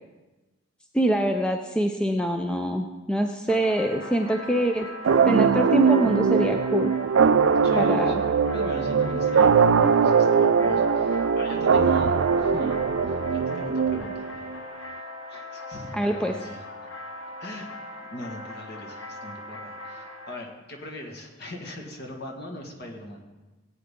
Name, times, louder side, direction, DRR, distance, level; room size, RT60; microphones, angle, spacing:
voice 1, 0.9-4.9 5.2-6.9 7.8-8.1 15.9-16.3, right 1 dB, 5° left, 4 dB, 0.4 m, -24 dB
sound 1, 3.5-20.3, left 2 dB, 80° left, 1.2 m, -40 dB
sound 2, 5.0-14.5, right 6 dB, 65° right, 0.4 m, -21 dB
voice 2, 7.6-14.3 15.3-16.7 17.4-17.7 18.1-23.2, left 1 dB, 50° left, 1 dB, 1.7 m, -39 dB
17.5 x 8.7 x 3.7 m, 1.2 s
head